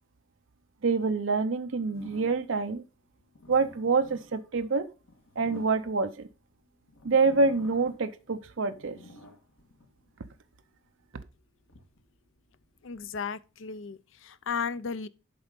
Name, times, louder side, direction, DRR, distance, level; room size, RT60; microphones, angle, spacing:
voice 1, 0.8-2.8 3.5-4.9 5.4-6.3 7.0-9.0, right 4 dB, 65° right, 0.6 m, -26 dB
sound 1, 1.8-2.7 3.2-6.4 6.9-8.2 8.5-10.4 11.0-13.1, left 1 dB, 85° left, 1.8 m, -51 dB
voice 2, 12.8-15.1, left 6 dB, 65° left, 0.5 m, -35 dB
11.0 x 4.1 x 5.2 m
head